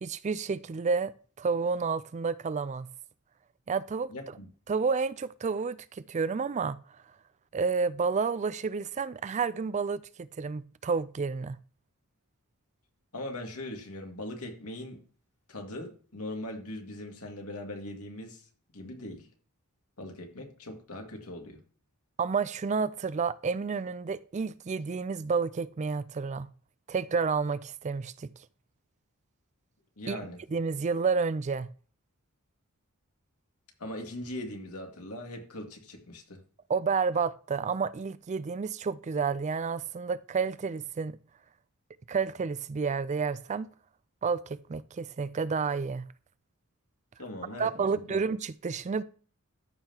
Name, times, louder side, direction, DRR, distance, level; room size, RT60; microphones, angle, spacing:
voice 1, 0.0-1.1 1.4-2.9 3.7-4.1 4.7-7.0 7.5-11.6 22.2-26.5 26.9-28.3 30.1-30.2 30.5-31.7 36.7-41.2 42.1-43.7 44.2-46.1 47.6-49.0, right 5 dB, 30° right, 0.4 m, -30 dB
voice 2, 4.1-4.5 13.1-15.0 15.5-18.4 18.7-19.3 20.0-21.6 30.0-30.4 33.8-36.4 47.2-47.7 48.1-48.2, left 1 dB, 85° left, 2.1 m, -40 dB
13.5 x 5.7 x 2.9 m
head